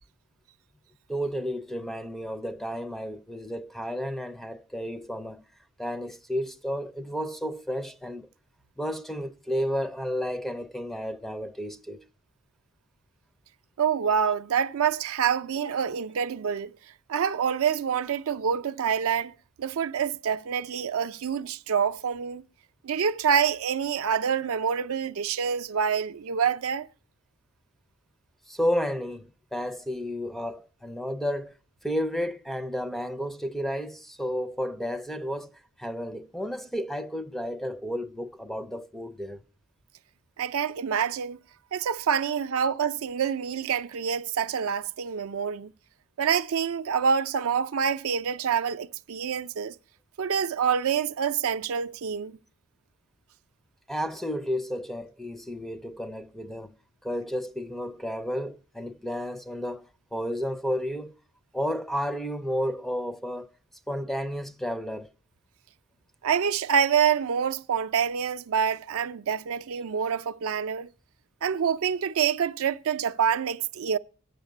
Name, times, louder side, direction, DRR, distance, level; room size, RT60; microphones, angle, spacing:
voice 1, 1.1-5.4 5.8-8.3 8.8-12.0 28.5-31.5 31.8-35.5 35.8-39.4 53.9-56.7 57.0-61.1 61.5-63.5 63.9-65.1, equal, ahead, 0.4 m, -32 dB
voice 2, 13.8-16.7 17.1-19.3 19.6-22.4 22.8-26.9 40.4-41.4 41.7-45.7 46.2-49.7 50.2-52.4 66.2-70.9 71.4-74.0, right 7 dB, 65° right, 0.4 m, -26 dB
9.2 x 7.2 x 7.7 m
head